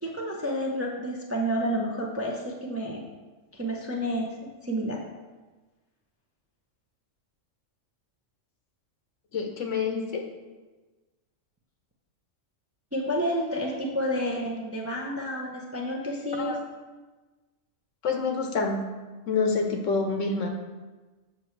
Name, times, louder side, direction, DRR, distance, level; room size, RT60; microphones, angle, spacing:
voice 1, 0.0-3.0 3.5-4.4 4.6-5.0 12.9-16.6, equal, 15° right, -1 dB, 0.5 m, -30 dB
voice 2, 9.3-10.2 16.4-16.6 18.0-18.8 19.3-20.5, left 4 dB, 70° left, 3 dB, 1.2 m, -27 dB
7.7 x 5.9 x 3.2 m, 1.2 s
omnidirectional pair, 1.4 m